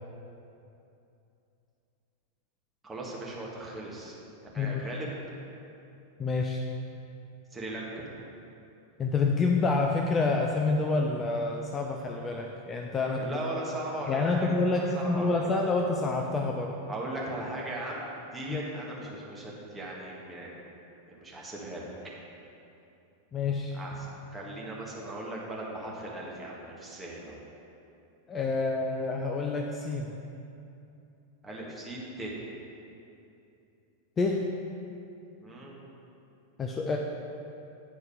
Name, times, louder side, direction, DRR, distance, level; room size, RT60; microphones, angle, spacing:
voice 1, 2.8-4.1 4.5-5.1 7.5-8.1 13.1-15.5 16.9-20.6 21.1-21.9 23.7-27.4 31.4-32.4 35.4-35.8, right 1 dB, 15° right, -4 dB, 1.6 m, -38 dB
voice 2, 6.2-6.6 9.0-13.4 14.1-16.7 18.5-18.6 23.3-23.8 28.3-30.1 34.2-34.5 36.6-37.0, left 3 dB, 20° left, 1 dB, 0.5 m, -28 dB
9.9 x 4.5 x 4.9 m, 2.7 s
figure-of-eight pair, 90°, 0 cm